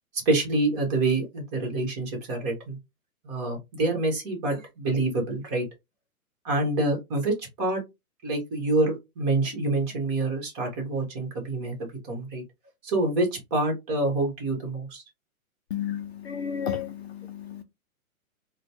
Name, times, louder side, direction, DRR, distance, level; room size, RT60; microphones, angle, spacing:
voice 1, 0.2-2.8 3.2-5.6 6.4-7.8 8.2-12.4 12.8-15.0, right 2 dB, 30° right, 1.4 m, -27 dB
voice 2, 15.7-17.6, left 9 dB, 45° left, 0.5 m, -32 dB
4.0 x 2.3 x 2.9 m
hypercardioid pair, 150°, 44 cm